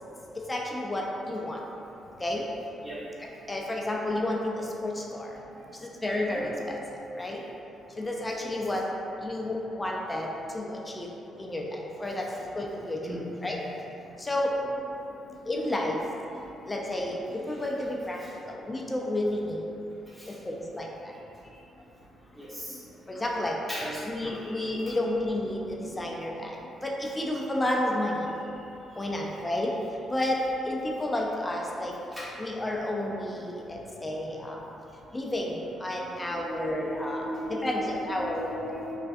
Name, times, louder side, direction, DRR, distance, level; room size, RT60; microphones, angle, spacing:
voice 1, 0.4-1.6 2.2-2.4 3.5-5.3 5.8-7.4 8.0-8.8 9.2-11.1 11.4-12.3 12.6-13.6 14.2-14.5 15.5-16.0 16.7-18.2 18.5-19.7 20.3-20.9 23.1-23.6 24.0-28.3 29.0-29.7 30.1-31.9 32.4-34.6 35.1-38.6, left 1 dB, 20° left, -2 dB, 0.3 m, -31 dB
voice 2, 22.4-22.8 23.7-24.8 32.1-32.3 36.3-39.0, equal, 20° right, -11 dB, 0.9 m, -37 dB
3.3 x 2.4 x 2.5 m, 2.9 s
cardioid pair, 90°, 0 cm